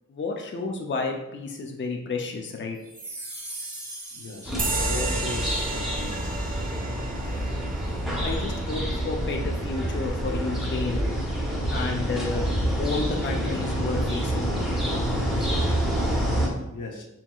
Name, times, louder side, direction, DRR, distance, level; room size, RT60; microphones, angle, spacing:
voice 1, 0.1-2.8 8.2-11.0 11.7-12.5 12.8-15.3 15.6-15.8, left 3 dB, 40° left, 2 dB, 0.5 m, -31 dB
sound 1, 2.8-5.4, right 1 dB, 50° right, 1.3 m, -40 dB
voice 2, 4.1-4.6 4.8-6.9 16.7-17.1, left 2 dB, 80° left, 1 dB, 0.7 m, -38 dB
sound 2, 4.4-16.5, equal, ahead, 0.9 m, -27 dB
sound 3, 4.6-11.6, right 3 dB, 30° right, 0.4 m, -34 dB
4.4 x 3.5 x 2.3 m, 0.89 s
wide cardioid pair, 100°, 30 cm